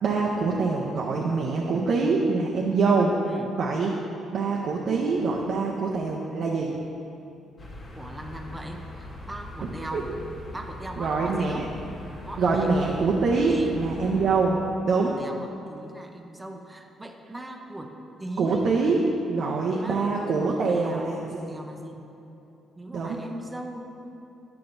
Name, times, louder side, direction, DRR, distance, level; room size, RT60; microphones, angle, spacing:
voice 1, 0.0-3.2 3.6-3.9 4.3-6.7 9.9-10.0 11.0-11.6 12.4-15.1 18.4-21.4 22.9-23.2, right 4 dB, 65° right, -2 dB, 0.6 m, -24 dB
sound 1, 7.6-14.5, left 1 dB, 45° left, 1.2 m, -41 dB
voice 2, 8.0-10.1 10.5-11.7 12.2-13.0 13.5-13.7 14.9-17.9 18.2-18.7 19.4-22.1 22.8-23.8, right 1 dB, 15° right, 3 dB, 0.6 m, -39 dB
9.7 x 5.7 x 2.6 m, 2.9 s
cardioid pair, 90°, 0 cm